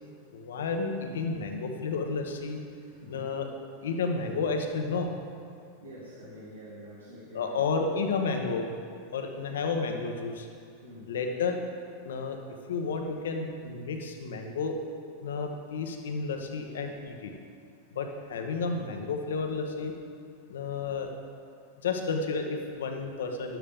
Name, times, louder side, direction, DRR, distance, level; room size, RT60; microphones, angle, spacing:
voice 1, 0.3-2.6 3.1-3.5 3.8-5.1 7.3-8.7 9.1-10.5 11.1-11.6 12.0-12.4 12.7-14.8 15.2-17.3 17.9-19.9 20.5-21.1 21.8-23.6, left 4 dB, 75° left, 4 dB, 1.3 m, -31 dB
voice 2, 2.8-3.3 5.8-7.6 10.8-11.1 17.9-18.0, equal, 85° right, -9 dB, 2.7 m, -46 dB
13.0 x 11.5 x 3.7 m, 2.3 s
hypercardioid pair, 90°, 0 cm